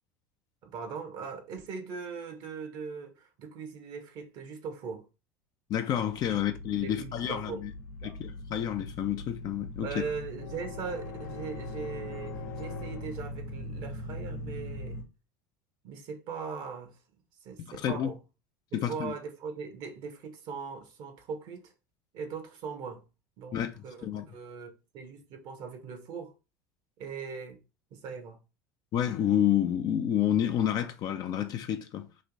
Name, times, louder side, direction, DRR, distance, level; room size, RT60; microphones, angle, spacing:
voice 1, 0.6-5.1 6.3-6.4 6.8-7.7 8.0-8.2 9.8-15.0 15.8-17.0 17.4-18.2 18.7-21.7 22.1-23.0 23.4-26.3 27.0-27.6 27.9-28.4, right 5 dB, 55° right, 1.0 m, -40 dB
voice 2, 5.7-7.7 8.0-9.9 17.6-18.1 18.7-19.1 23.5-23.7 24.0-24.3 28.9-32.1, left 10 dB, 45° left, 0.5 m, -29 dB
sound 1, 6.1-15.0, left 2 dB, 80° left, 0.9 m, -40 dB
3.2 x 2.5 x 3.8 m
hypercardioid pair, 85°, 9 cm